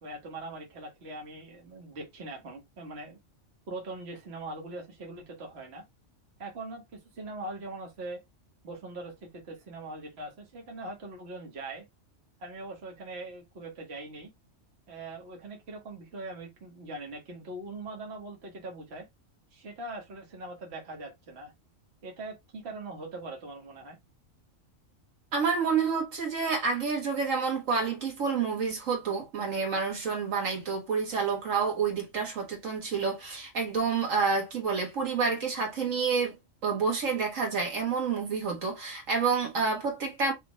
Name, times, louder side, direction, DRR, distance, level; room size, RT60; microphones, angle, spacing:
voice 1, 0.0-3.2 3.7-5.8 6.4-8.2 8.6-11.8 12.4-14.3 14.9-19.1 19.5-21.5 22.0-24.0, right 2 dB, 55° right, 1.5 m, -41 dB
voice 2, 25.3-36.4 36.6-40.3, right 5 dB, 80° right, 1.8 m, -29 dB
5.4 x 2.5 x 3.0 m
omnidirectional pair, 1.3 m